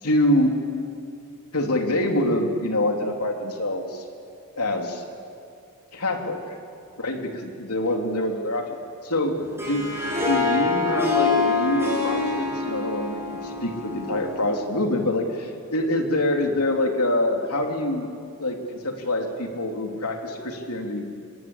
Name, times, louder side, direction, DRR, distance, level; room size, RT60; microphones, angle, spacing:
voice 1, 0.0-0.6 1.5-4.0 4.6-5.0 5.9-6.5 7.0-8.8 9.0-9.9 10.2-18.1 18.4-21.1, left 1 dB, 85° left, 2 dB, 3.2 m, -25 dB
Harp, 9.4-14.6, left 3 dB, 10° right, 7.2 m, -25 dB
26.0 x 21.0 x 8.6 m, 2.6 s
head